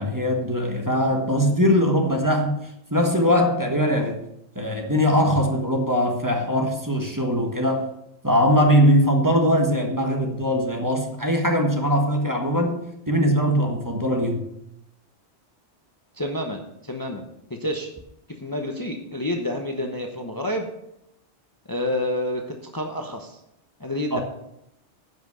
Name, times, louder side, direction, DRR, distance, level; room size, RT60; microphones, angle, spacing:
voice 1, 0.0-2.6 2.9-4.2 4.5-7.9 8.2-12.8 13.1-14.5 24.1-24.2, equal, 15° right, 2 dB, 1.3 m, -21 dB
voice 2, 16.1-17.3 17.6-17.9 18.4-20.7 21.7-23.4 23.8-24.2, left 1 dB, 20° left, 3 dB, 0.9 m, -28 dB
10.5 x 6.0 x 6.8 m, 0.81 s
omnidirectional pair, 1.2 m